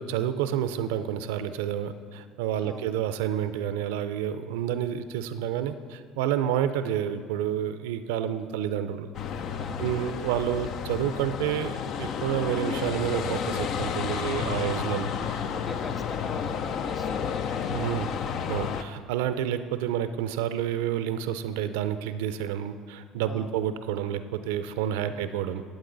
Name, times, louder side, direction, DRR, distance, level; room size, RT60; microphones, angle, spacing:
voice 1, 0.0-9.1 9.8-15.4 17.7-18.1 18.5-25.6, right 10 dB, 80° right, 12 dB, 0.4 m, -29 dB
voice 2, 2.6-3.0 9.6-10.3 14.2-14.8 15.4-18.3 23.3-23.7 25.1-25.4, left 2 dB, 25° left, 8 dB, 0.7 m, -43 dB
sound 1, 9.1-18.8, left 7 dB, 60° left, 0.5 m, -31 dB
13.0 x 7.8 x 3.9 m, 2.1 s
hypercardioid pair, 75°, 0 cm